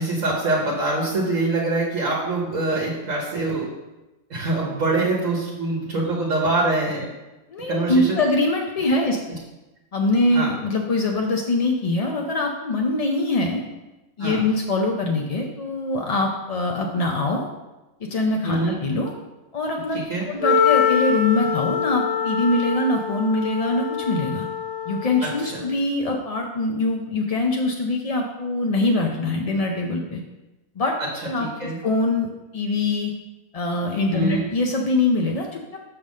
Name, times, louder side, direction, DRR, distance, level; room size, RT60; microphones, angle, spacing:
voice 1, 0.0-3.7 4.3-7.1 7.7-8.1 10.3-10.5 14.2-14.4 18.4-18.8 19.9-20.3 25.2-25.6 31.4-31.8 34.1-34.4, right 2 dB, 65° right, -2 dB, 1.4 m, -24 dB
voice 2, 7.5-9.2 9.9-13.6 14.2-17.4 18.0-19.1 19.5-20.0 20.3-24.4 24.8-30.2 30.8-30.9 31.2-33.1 33.5-35.8, left 2 dB, 60° left, 1 dB, 0.3 m, -23 dB
Wind instrument woodwind instrument, 20.4-25.5, left 7 dB, 20° left, 1.4 m, -24 dB
6.6 x 3.7 x 6.3 m, 1.0 s
omnidirectional pair, 1.5 m